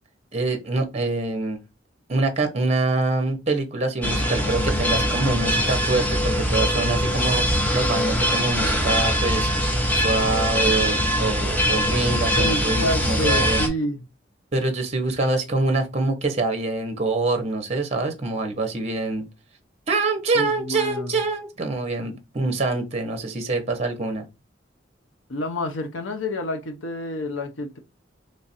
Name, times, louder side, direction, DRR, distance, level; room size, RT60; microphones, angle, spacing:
voice 1, 0.3-1.6 2.1-13.6 14.5-19.3 19.9-24.3, right 3 dB, 35° right, 0.8 m, -25 dB
sound 1, 4.0-13.7, equal, 10° left, 0.7 m, -22 dB
voice 2, 12.3-14.0 20.3-21.2 25.3-27.8, left 1 dB, 80° left, 0.6 m, -28 dB
3.2 x 2.4 x 4.1 m
head